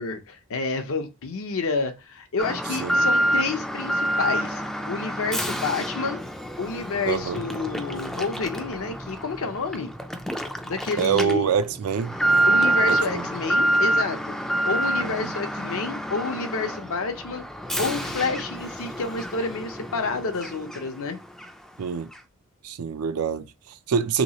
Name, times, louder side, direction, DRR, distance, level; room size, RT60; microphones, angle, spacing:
voice 1, 0.0-4.6 4.9-6.2 6.6-9.9 10.6-11.5 12.5-14.3 14.7-17.4 17.8-21.2, left 4 dB, 65° left, 0.7 m, -29 dB
Alarm, 2.4-21.1 21.4-21.5 22.1-22.2, right 1 dB, ahead, 0.3 m, -27 dB
voice 2, 7.1-7.4 11.0-12.1 12.9-13.2 15.0-15.1 21.8-22.1 22.6-24.2, right 6 dB, 70° right, 0.4 m, -25 dB
3.1 x 2.9 x 2.8 m
head